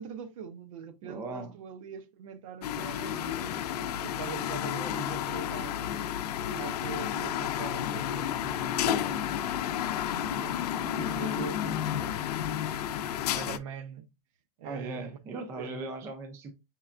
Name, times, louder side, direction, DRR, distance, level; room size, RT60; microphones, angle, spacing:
voice 1, 0.0-3.5 4.0-6.0 6.5-9.5 10.1-12.3 13.2-14.1 14.6-15.2 15.6-15.8, right 7 dB, 60° right, 0.7 m, -42 dB
voice 2, 1.0-1.5 10.5-10.7 14.6-16.5, right 2 dB, 15° right, 0.4 m, -38 dB
sound 1, 2.6-13.6, left 10 dB, 85° left, 0.5 m, -31 dB
5.7 x 3.2 x 2.4 m
supercardioid pair, 175°, 20 cm